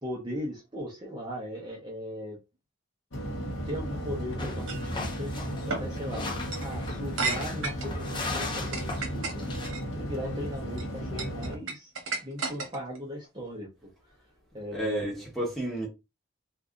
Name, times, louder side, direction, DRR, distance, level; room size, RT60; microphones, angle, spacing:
voice 1, 0.0-2.4 3.7-6.2 6.6-9.5 9.9-11.9 12.2-13.7 14.5-15.1, equal, 20° right, 0.7 m, -38 dB
sound 1, 3.1-11.6, equal, 75° left, 0.9 m, -35 dB
sound 2, 4.4-9.7, left 3 dB, 25° left, 0.6 m, -38 dB
sound 3, 4.7-4.9 5.7-5.9 6.4-6.7 7.2-7.9 8.5-9.8 10.5-10.8 11.2-13.0, right 3 dB, 80° right, 1.0 m, -33 dB
voice 2, 14.7-15.9, right 1 dB, ahead, 1.1 m, -31 dB
2.7 x 2.4 x 3.6 m
head